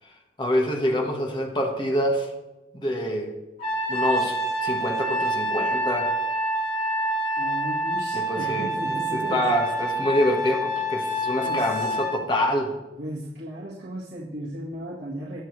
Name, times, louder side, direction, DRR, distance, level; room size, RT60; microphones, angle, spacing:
voice 1, 0.4-2.3 2.7-3.3 3.9-4.3 4.6-6.1 8.1-8.7 9.1-12.7, equal, 25° left, 1 dB, 1.5 m, -26 dB
Trumpet, 3.6-12.2, right 1 dB, 45° left, 4.4 m, -27 dB
voice 2, 7.4-9.9 11.4-12.0 13.0-15.4, right 1 dB, 75° right, -4 dB, 1.8 m, -36 dB
19.0 x 7.4 x 3.3 m, 1.0 s
head